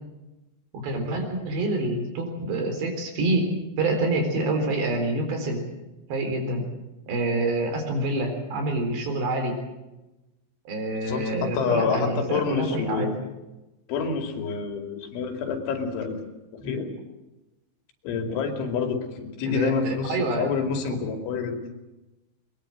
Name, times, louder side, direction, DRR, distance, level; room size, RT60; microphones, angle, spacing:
voice 1, 0.7-5.6 6.1-6.7 7.1-9.6 10.7-13.1 19.5-20.5, right 2 dB, 65° right, 5 dB, 6.1 m, -27 dB
voice 2, 11.1-13.2 13.9-16.2 16.5-17.0 18.0-21.6, left 5 dB, 85° left, 5 dB, 5.1 m, -28 dB
21.5 x 21.5 x 7.7 m, 1.0 s
omnidirectional pair, 5.4 m